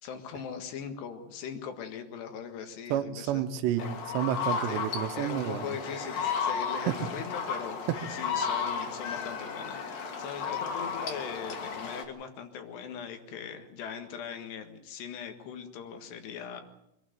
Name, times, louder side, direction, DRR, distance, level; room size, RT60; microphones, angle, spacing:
voice 1, 0.0-3.4 4.7-4.9 5.2-7.8 8.1-16.6, left 7 dB, 75° left, 3.8 m, -40 dB
voice 2, 2.9-5.8 6.9-7.0, right 11 dB, 85° right, 3.3 m, -30 dB
sound 1, 3.8-12.0, left 6 dB, 60° left, 3.7 m, -34 dB
25.0 x 12.0 x 9.2 m
omnidirectional pair, 4.9 m